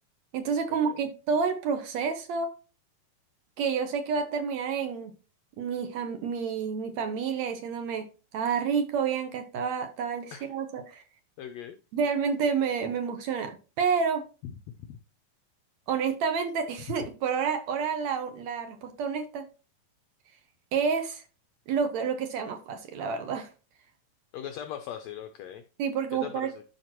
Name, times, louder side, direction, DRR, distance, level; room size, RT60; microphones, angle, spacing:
voice 1, 0.3-2.5 3.6-5.1 5.6-8.1 8.3-11.0 11.9-14.2 15.9-19.5 20.7-21.2 21.7-23.5 25.8-26.5, right 6 dB, 70° right, 1.9 m, -29 dB
voice 2, 11.4-11.8 14.4-14.5 14.9-15.0 24.3-25.6 26.1-26.6, left 9 dB, 80° left, 1.5 m, -39 dB
12.0 x 5.0 x 3.0 m
omnidirectional pair, 3.8 m